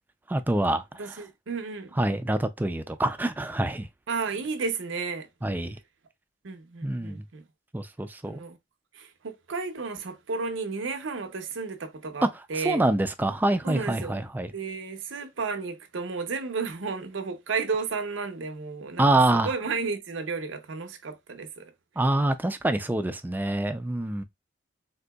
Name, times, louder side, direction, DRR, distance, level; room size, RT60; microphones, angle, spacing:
voice 1, 0.3-1.1 2.0-3.9 5.4-5.8 6.8-7.2 7.7-8.4 12.5-14.5 19.0-19.5 22.0-24.2, right 2 dB, 10° right, 0.3 m, -26 dB
voice 2, 1.0-2.0 4.1-5.3 6.4-7.4 8.2-8.6 8.9-12.9 13.6-14.2 14.5-19.0 19.3-21.7, right 4 dB, 85° right, 0.7 m, -33 dB
3.8 x 2.7 x 2.2 m
head